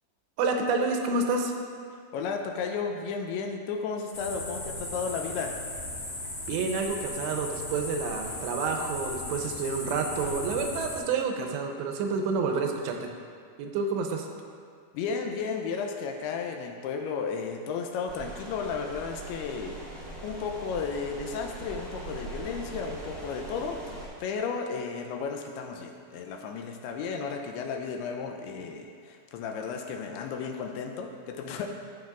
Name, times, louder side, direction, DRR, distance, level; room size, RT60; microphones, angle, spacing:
voice 1, 0.4-1.5 6.5-13.1 13.6-14.3, right 4 dB, 90° right, 3 dB, 2.8 m, -29 dB
voice 2, 2.1-5.6 14.9-19.8 20.2-31.7, left 5 dB, 85° left, 3 dB, 2.4 m, -34 dB
sound 1, 4.1-11.0, left 2 dB, 40° left, 2.1 m, -37 dB
sound 2, 18.1-24.1, right 2 dB, 35° right, 0.9 m, -41 dB
13.5 x 7.3 x 2.4 m, 2.2 s
omnidirectional pair, 5.0 m